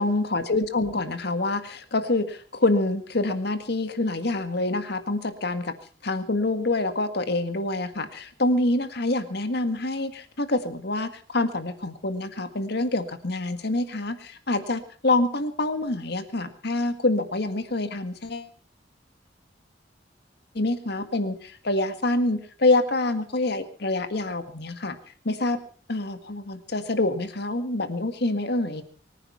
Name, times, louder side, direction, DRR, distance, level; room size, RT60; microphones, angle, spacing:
voice 1, 0.0-5.7 6.0-18.5 20.5-24.9 25.2-25.6 25.9-28.8, left 2 dB, 60° left, 10 dB, 1.8 m, -26 dB
24.0 x 10.0 x 5.7 m, 0.43 s
head